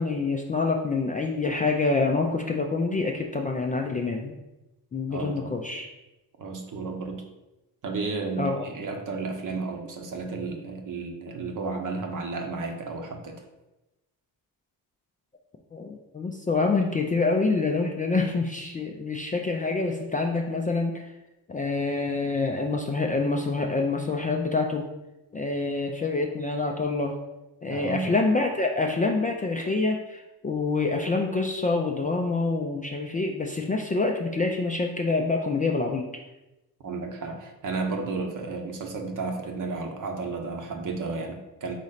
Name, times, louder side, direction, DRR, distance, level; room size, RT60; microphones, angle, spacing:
voice 1, 0.0-4.3 4.9-5.9 8.4-8.7 15.7-21.1 21.5-24.8 25.3-27.1 27.6-36.0, left 3 dB, 20° left, 1 dB, 0.3 m, -26 dB
voice 2, 5.1-5.6 6.4-7.3 7.8-13.4 27.7-28.1 36.8-41.7, right 4 dB, 50° right, 4 dB, 0.9 m, -33 dB
4.1 x 3.1 x 4.0 m, 0.98 s
cardioid pair, 85°, 42 cm